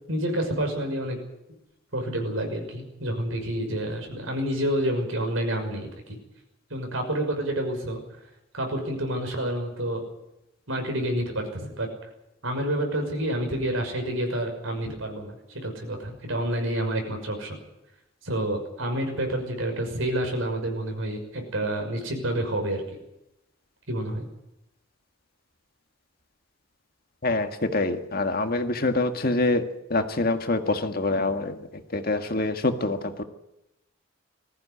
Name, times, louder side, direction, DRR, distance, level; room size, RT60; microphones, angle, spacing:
voice 1, 0.1-1.2 1.9-5.9 6.7-8.0 8.5-10.0 10.7-11.9 12.4-17.6 18.2-22.8 23.9-24.3, right 1 dB, 85° right, 4 dB, 6.0 m, -28 dB
voice 2, 27.2-29.6 29.9-33.2, left 2 dB, 45° left, 7 dB, 1.7 m, -25 dB
20.5 x 15.0 x 9.9 m, 0.88 s
head